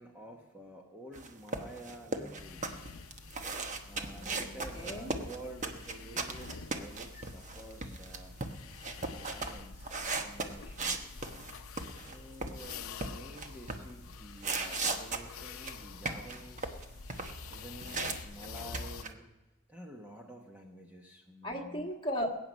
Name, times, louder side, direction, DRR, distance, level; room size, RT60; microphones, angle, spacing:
voice 1, 0.0-2.8 3.8-8.3 9.0-11.0 11.9-16.8 17.4-19.2 19.7-21.9, right 1 dB, 10° right, 1 dB, 1.1 m, -50 dB
sound 1, 1.1-12.2 12.4-13.9 14.4-18.1 18.4-19.1, right 3 dB, 35° right, 1.1 m, -37 dB
voice 2, 2.1-3.2 4.1-5.2 21.4-22.3, equal, 25° left, 1 dB, 1.7 m, -39 dB
sound 2, 2.4-19.0, left 5 dB, 80° left, 0.7 m, -48 dB
21.0 x 9.1 x 5.3 m, 1.1 s
head